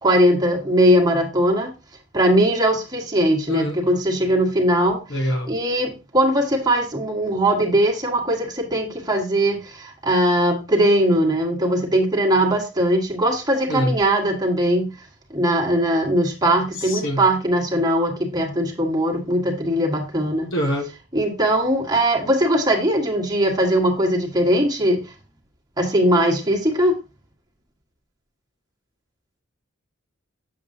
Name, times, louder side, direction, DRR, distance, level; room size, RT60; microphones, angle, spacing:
voice 1, 0.0-1.7 2.1-5.0 5.5-14.9 15.3-20.5 21.1-25.0 25.8-27.0, right 1 dB, 20° right, 1.6 m, -20 dB
voice 2, 3.5-3.8 5.1-5.5 13.7-13.9 16.8-17.2 20.5-20.9, equal, 65° left, 1.5 m, -24 dB
7.6 x 7.2 x 2.7 m
head